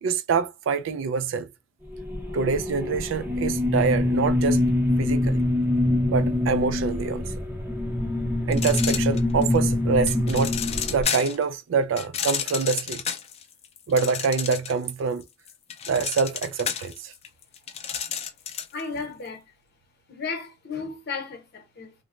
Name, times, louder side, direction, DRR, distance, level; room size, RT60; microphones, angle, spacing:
voice 1, 0.0-1.5 2.3-4.6 5.0-5.4 6.1-7.3 8.5-10.6 10.9-13.0 13.9-15.2 15.9-17.1, right 5 dB, 80° right, 0.3 m, -25 dB
sound 1, 1.8-11.0, left 1 dB, 10° right, 0.6 m, -25 dB
sound 2, 8.5-9.6 10.1-11.4 12.0-14.9 15.2-18.8, left 8 dB, 35° left, 0.4 m, -31 dB
voice 2, 18.7-19.4 20.1-21.9, left 4 dB, 55° left, 0.8 m, -34 dB
3.0 x 2.1 x 2.4 m
head